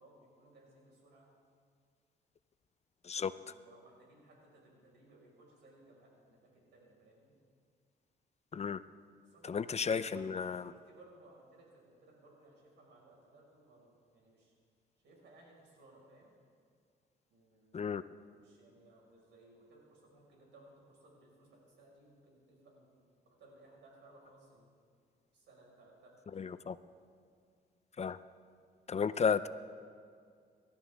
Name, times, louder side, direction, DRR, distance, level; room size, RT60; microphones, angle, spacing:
voice 1, 0.0-1.3 3.2-7.3 9.2-14.5 15.0-16.3 17.3-18.0 18.3-22.9 23.2-24.7 25.3-26.5, right 2 dB, 85° right, -2 dB, 5.2 m, -61 dB
voice 2, 9.4-10.7 17.7-18.0 26.3-26.8 28.0-28.2 28.9-29.5, left 6 dB, 35° left, 14 dB, 0.5 m, -33 dB
25.5 x 13.0 x 3.5 m, 2.1 s
cardioid pair, 85°, 18 cm